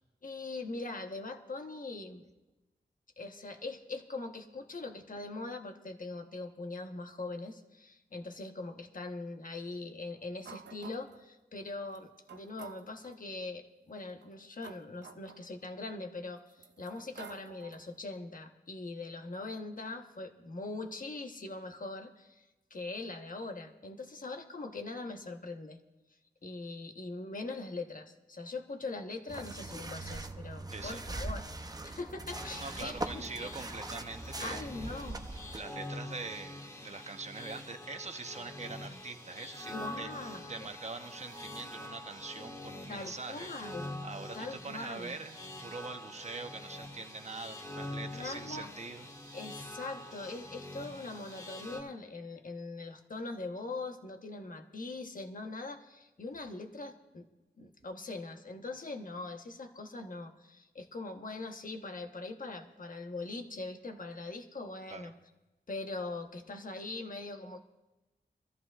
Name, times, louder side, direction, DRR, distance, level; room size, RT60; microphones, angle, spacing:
voice 1, 0.2-2.2 3.2-25.8 26.4-33.5 34.4-35.3 39.7-40.7 42.9-44.0 44.3-45.2 48.1-48.7 49.3-57.3 57.6-65.1 65.7-67.6, left 3 dB, 50° left, 5 dB, 1.2 m, -42 dB
sound 1, 10.4-11.3 11.9-12.0 12.3-13.2 14.0-15.9 16.5-18.0, right 7 dB, 90° right, 0.5 m, -52 dB
sound 2, 29.3-35.6, right 2 dB, 20° right, 0.6 m, -41 dB
voice 2, 30.7-31.0 32.6-34.6 35.5-40.1 40.5-43.5 44.0-45.4 45.6-49.1 64.9-65.1, right 3 dB, 40° right, 6 dB, 1.0 m, -43 dB
sound 3, 32.3-51.8, left 1 dB, 20° left, 2.0 m, -45 dB
23.0 x 14.0 x 2.5 m, 1.1 s
wide cardioid pair, 90°, 17 cm